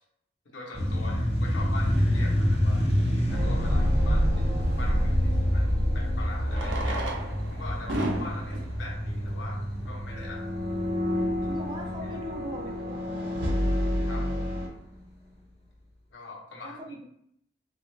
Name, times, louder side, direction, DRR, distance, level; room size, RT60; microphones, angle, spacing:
voice 1, 0.4-2.9 3.3-7.0 7.5-10.9 11.5-11.6 14.1-14.6 16.1-16.8, left 2 dB, 85° left, -2 dB, 0.8 m, -42 dB
sound 1, 0.7-13.9, equal, 30° left, 0.5 m, -28 dB
Fireworks, 2.9-3.0 5.2-5.3 6.4-10.2 10.9-11.0 11.2-11.3 11.5-11.6 12.1-12.4, right 1 dB, 85° right, 0.6 m, -35 dB
sound 2, 3.3-8.2 8.4-8.7 10.1-14.7, equal, 55° right, 0.8 m, -29 dB
voice 2, 11.5-13.4 16.6-17.0, right 1 dB, 25° right, 1 dB, 0.5 m, -40 dB
2.8 x 2.3 x 3.1 m, 0.72 s
head